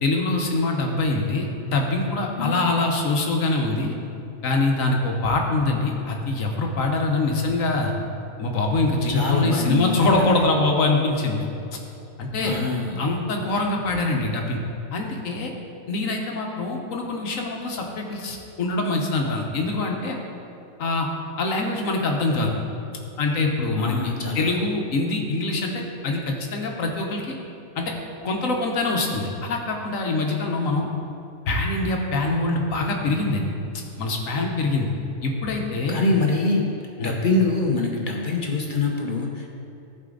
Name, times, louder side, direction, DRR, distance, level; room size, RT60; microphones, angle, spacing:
voice 1, 0.0-3.9 4.4-7.9 8.4-11.5 12.2-12.6 13.0-14.6 14.9-15.5 15.9-20.2 20.8-21.1 21.4-22.5 23.2-27.3 27.8-27.9 28.2-30.9 31.5-33.5 34.0-34.9 35.2-36.0 37.0-37.2, left 2 dB, 70° left, 1 dB, 1.3 m, -24 dB
voice 2, 9.1-10.4 12.4-13.0 23.8-24.6 35.9-36.6 37.0-39.5, left 3 dB, 40° left, 0 dB, 0.9 m, -24 dB
14.5 x 5.0 x 3.8 m, 2.6 s
omnidirectional pair, 1.5 m